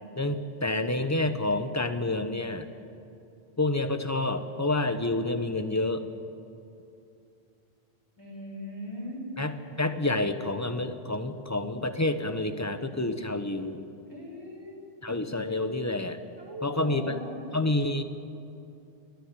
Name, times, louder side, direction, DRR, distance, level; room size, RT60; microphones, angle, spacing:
voice 1, 0.2-2.7 3.6-6.0 9.4-13.8 15.0-16.2 16.6-17.2 17.5-18.0, left 2 dB, 15° left, 8 dB, 0.9 m, -28 dB
voice 2, 8.2-9.2 14.1-14.9 16.4-17.4, left 1 dB, 20° right, -2 dB, 5.5 m, -39 dB
28.5 x 10.5 x 9.7 m, 2.7 s
omnidirectional pair, 1.1 m